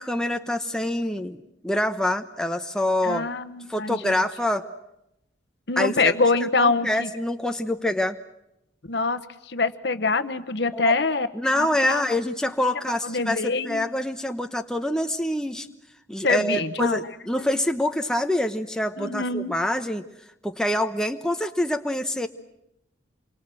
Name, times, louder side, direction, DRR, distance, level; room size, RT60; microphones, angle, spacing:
voice 1, 0.0-3.3 3.7-4.7 5.8-6.2 6.6-8.2 10.7-11.0 11.3-15.7 16.1-20.0 20.4-22.3, left 1 dB, 5° left, 5 dB, 0.9 m, -26 dB
voice 2, 3.0-4.2 5.7-7.1 8.9-11.3 11.6-12.0 13.0-13.9 16.2-17.0 17.4-17.5 19.0-19.5, left 3 dB, 60° left, 10 dB, 1.1 m, -25 dB
28.0 x 23.0 x 7.8 m, 0.85 s
head